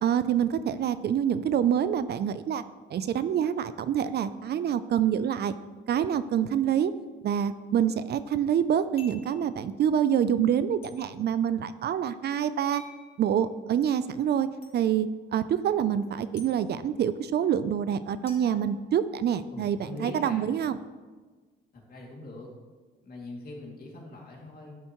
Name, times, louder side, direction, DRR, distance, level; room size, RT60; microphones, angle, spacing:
voice 1, 0.0-2.6 2.9-5.5 5.9-6.9 7.2-12.8 13.2-14.5 14.7-20.7, right 9 dB, 55° right, 13 dB, 0.4 m, -26 dB
sound 1, 9.0-9.4 10.8-11.0 12.7-13.0 14.6-14.7 16.4-16.5 18.3-19.3, left 1 dB, 30° left, 2.0 m, -49 dB
voice 2, 19.5-20.5 21.7-22.5 23.0-24.8, left 2 dB, 50° left, -2 dB, 2.5 m, -42 dB
12.0 x 7.0 x 3.1 m, 1.4 s
cardioid pair, 90°, 20 cm